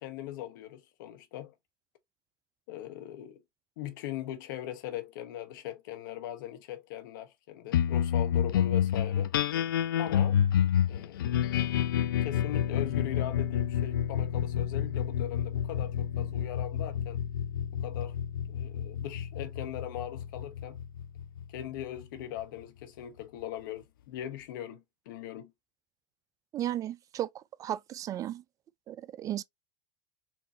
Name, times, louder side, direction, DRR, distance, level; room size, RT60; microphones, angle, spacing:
voice 1, 0.0-1.5 2.7-3.4 3.8-9.3 10.0-10.4 10.9-17.2 17.7-18.2 18.5-20.8 21.5-25.5, left 12 dB, 70° left, 1.1 m, -40 dB
sound 1, 7.7-22.4, left 9 dB, 85° left, 0.5 m, -29 dB
voice 2, 26.5-28.4 28.9-29.4, right 12 dB, 30° right, 0.4 m, -35 dB
4.5 x 3.0 x 2.7 m
hypercardioid pair, 105°, 11 cm